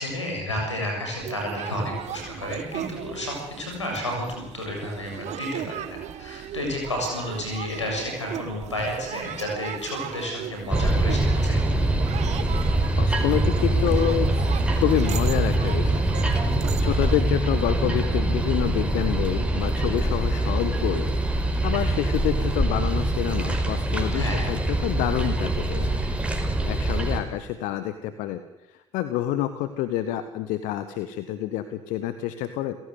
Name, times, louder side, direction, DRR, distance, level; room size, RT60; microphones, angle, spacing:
voice 1, 0.0-11.6 24.1-24.5, left 1 dB, 85° left, 2 dB, 7.2 m, -31 dB
sound 1, 1.2-17.2, right 11 dB, 50° right, 1.6 m, -37 dB
sound 2, 10.7-27.2, right 1 dB, 10° right, 5.0 m, -24 dB
voice 2, 12.9-14.3 14.7-24.6 24.8-25.9 26.6-28.4 28.7-32.8, left 12 dB, 60° left, 12 dB, 1.4 m, -28 dB
30.0 x 17.0 x 8.3 m, 0.97 s
figure-of-eight pair, 50°, 15 cm